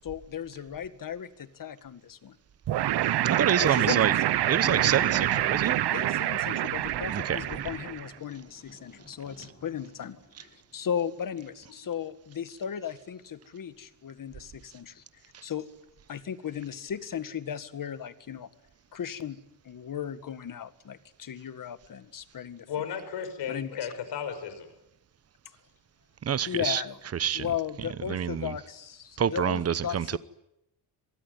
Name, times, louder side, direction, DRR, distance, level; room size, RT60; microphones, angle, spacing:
voice 1, 0.0-2.4 3.6-4.2 5.6-15.0 15.4-15.7 16.1-18.5 18.9-19.4 19.6-22.7 23.5-23.8 26.5-27.0 27.3-30.2, left 8 dB, 55° left, 1.9 m, -36 dB
sound 1, 2.7-8.1, right 13 dB, 80° right, 1.1 m, -26 dB
voice 2, 3.2-4.1 4.5-5.8 7.1-7.4 26.2-26.8 27.2-27.4 28.1-28.5 29.2-30.2, right 8 dB, 35° right, 1.0 m, -27 dB
Thunder, 4.2-11.4, left 2 dB, 30° left, 7.9 m, -47 dB
voice 3, 22.7-24.7, left 8 dB, 85° left, 5.5 m, -34 dB
27.0 x 19.0 x 9.5 m
cardioid pair, 115°, 40 cm